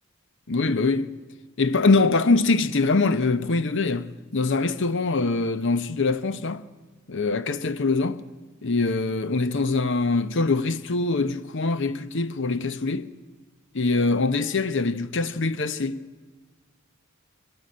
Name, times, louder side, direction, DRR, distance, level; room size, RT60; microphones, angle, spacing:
voice 1, 0.5-1.1 1.6-6.6 7.1-8.2 8.6-13.1 13.7-16.0, left 3 dB, 55° left, 0.9 m, -23 dB
23.0 x 15.0 x 8.7 m
head